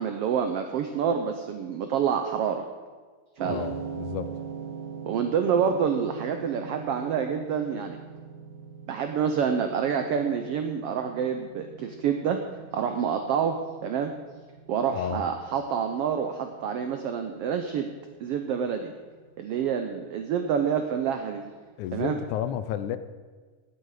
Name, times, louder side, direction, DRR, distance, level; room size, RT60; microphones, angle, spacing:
voice 1, 0.0-2.7 3.4-3.6 5.1-8.0 8.9-12.4 12.7-14.1 14.7-17.9 18.2-18.9 19.4-21.4 21.9-22.1, right 7 dB, 85° right, 6 dB, 1.3 m, -27 dB
sound 1, 3.4-21.6, right 7 dB, 50° right, 1.8 m, -43 dB
voice 2, 3.5-4.3 14.9-15.2 21.8-23.0, left 10 dB, 80° left, 12 dB, 2.0 m, -31 dB
17.0 x 8.5 x 4.9 m, 1.5 s
omnidirectional pair, 3.6 m